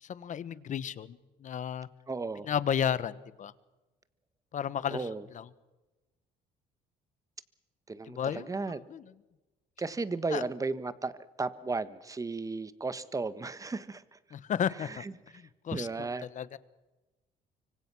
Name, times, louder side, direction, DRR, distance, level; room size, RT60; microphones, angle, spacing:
voice 1, 0.0-1.9 2.5-3.5 4.5-5.1 5.3-5.5 8.1-9.0 10.3-10.4 14.3-15.0 15.3-16.6, left 8 dB, 50° left, 16 dB, 1.3 m, -33 dB
voice 2, 2.1-2.5 4.9-5.3 7.9-8.8 9.8-14.2 14.8-15.1 15.7-16.3, right 3 dB, 20° right, 14 dB, 1.4 m, -35 dB
25.0 x 24.5 x 6.2 m, 1.1 s
cardioid pair, 110°, 17 cm